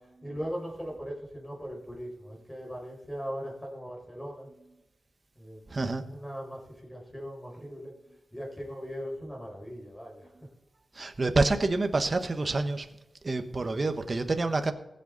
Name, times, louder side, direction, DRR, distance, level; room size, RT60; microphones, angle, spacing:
voice 1, 0.2-4.5 5.4-5.6 6.1-7.9 8.3-10.3, equal, 10° left, -1 dB, 4.8 m, -39 dB
voice 2, 5.7-6.1 10.9-12.9 13.2-14.7, right 3 dB, 35° right, 7 dB, 1.2 m, -27 dB
21.5 x 7.8 x 4.0 m, 0.97 s
wide cardioid pair, 125°, 0 cm